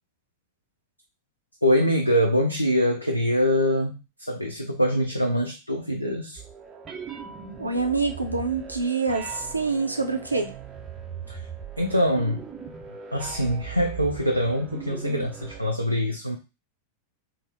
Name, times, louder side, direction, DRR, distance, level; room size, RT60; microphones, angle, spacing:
voice 1, 1.6-6.4 11.3-11.4 11.8-12.5 13.1-16.4, equal, 90° left, 2 dB, 0.4 m, -24 dB
sound 1, 6.4-15.6, right 7 dB, 25° right, 0.5 m, -39 dB
voice 2, 7.6-10.5, right 4 dB, 85° right, 4 dB, 0.5 m, -26 dB
2.9 x 2.0 x 3.2 m, 0.28 s
figure-of-eight pair, 90°, 0 cm